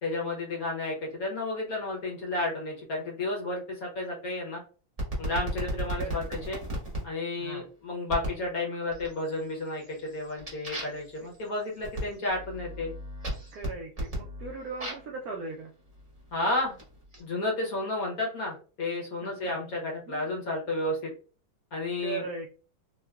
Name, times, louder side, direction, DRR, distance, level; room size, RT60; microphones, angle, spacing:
voice 1, 0.0-4.6 5.2-6.6 7.0-12.9 16.3-16.8 17.2-21.1 21.7-22.2, left 2 dB, 55° left, -1 dB, 1.1 m, -32 dB
sound 1, 5.0-7.0 8.1-8.4 8.9-9.4 9.8-15.2 16.0-17.2, right 1 dB, 25° right, 0.8 m, -36 dB
voice 2, 5.9-6.5 7.4-7.7 11.2-11.3 13.5-15.7 19.2-19.6 20.1-20.3 22.0-22.5, right 4 dB, 80° right, 1 dB, 0.8 m, -39 dB
3.6 x 2.4 x 2.2 m, 0.37 s
omnidirectional pair, 2.1 m